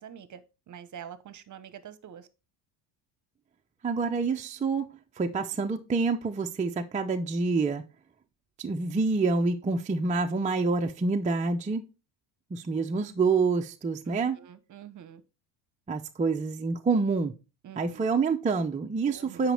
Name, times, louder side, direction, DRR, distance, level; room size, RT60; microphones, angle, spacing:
voice 1, 0.0-2.3 14.1-15.2 17.6-18.1 19.1-19.5, right 9 dB, 40° right, 0.9 m, -46 dB
voice 2, 3.8-7.8 8.6-11.9 12.5-14.4 15.9-17.3 17.8-19.5, right 4 dB, 15° right, 0.5 m, -27 dB
8.9 x 5.2 x 3.4 m
supercardioid pair, 100°, 48 cm